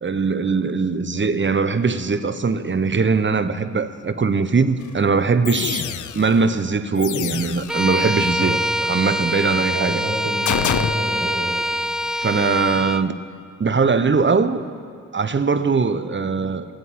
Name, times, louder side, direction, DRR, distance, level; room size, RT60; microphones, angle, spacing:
voice 1, 0.0-8.6 8.9-10.0 12.2-13.1 13.6-14.6 15.1-16.7, right 4 dB, 35° right, 11 dB, 0.9 m, -21 dB
sound 1, 4.8-4.9 5.4-6.4 7.0-7.9 10.5-10.9, left 10 dB, 65° left, 0.6 m, -26 dB
Bowed string instrument, 7.7-13.1, equal, ahead, 0.4 m, -24 dB
voice 2, 8.2-8.5 9.6-11.6, right 1 dB, 60° right, -4 dB, 4.5 m, -29 dB
14.5 x 8.0 x 8.6 m, 2.2 s
supercardioid pair, 40°, 33 cm